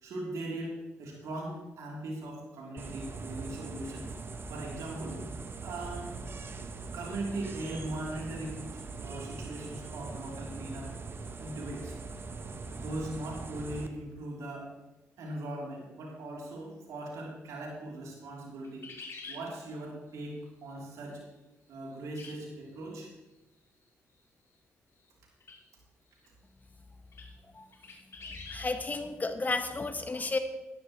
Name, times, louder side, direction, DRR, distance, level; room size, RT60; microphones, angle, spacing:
voice 1, 0.0-4.1 4.5-5.2 5.6-6.2 6.9-10.9 11.4-11.9 12.7-14.7 15.2-18.9 19.3-20.3 20.6-21.2 21.7-23.1, right 1 dB, 75° right, -3 dB, 3.4 m, -39 dB
sound 1, 2.8-13.9, right 4 dB, 45° right, 1.0 m, -41 dB
sound 2, 18.6-19.4 22.2-22.3 22.7-22.8 25.4-25.6 26.2-26.3 27.1-27.3 27.7-28.8, left 3 dB, 55° left, 2.6 m, -45 dB
voice 2, 28.5-30.4, left 3 dB, 30° left, 8 dB, 1.4 m, -32 dB
14.5 x 11.0 x 3.2 m, 1.0 s
supercardioid pair, 55°, 5 cm